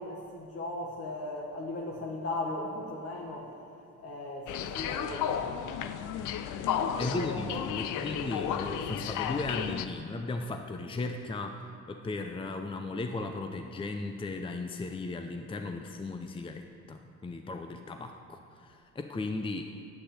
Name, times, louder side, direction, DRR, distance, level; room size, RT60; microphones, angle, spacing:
voice 1, 0.0-3.5 4.0-5.8 6.6-8.4, left 2 dB, 50° left, -1 dB, 1.4 m, -38 dB
sound 1, 4.5-9.9, left 9 dB, 90° left, 0.6 m, -33 dB
voice 2, 6.6-19.7, left 3 dB, 15° left, 5 dB, 0.6 m, -36 dB
8.3 x 7.7 x 8.6 m, 2.5 s
cardioid pair, 90°, 30 cm